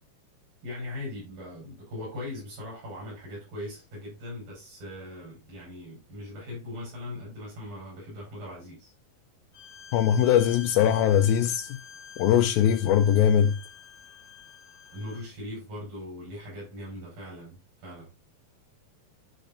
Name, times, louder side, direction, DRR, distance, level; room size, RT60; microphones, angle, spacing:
voice 1, 0.6-8.9 14.9-18.1, left 1 dB, 75° right, 8.7 m, -40 dB
Bowed string instrument, 9.5-15.3, left 6 dB, 50° left, 2.0 m, -47 dB
voice 2, 9.9-11.8 12.2-13.6, left 9 dB, 80° left, 2.6 m, -21 dB
13.0 x 6.7 x 2.7 m
omnidirectional pair, 4.2 m